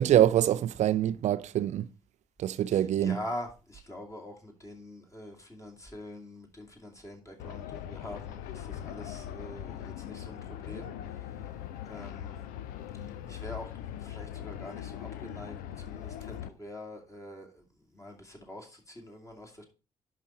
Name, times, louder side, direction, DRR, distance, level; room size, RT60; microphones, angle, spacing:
voice 1, 0.0-1.9 2.4-3.2, right 11 dB, 45° right, 0.4 m, -25 dB
voice 2, 2.7-11.5 11.9-12.4 12.9-19.6, left 1 dB, 20° left, 2.4 m, -44 dB
sound 1, 7.4-16.5, left 10 dB, 65° left, 0.6 m, -41 dB
11.0 x 3.8 x 4.3 m
figure-of-eight pair, 45°, 16 cm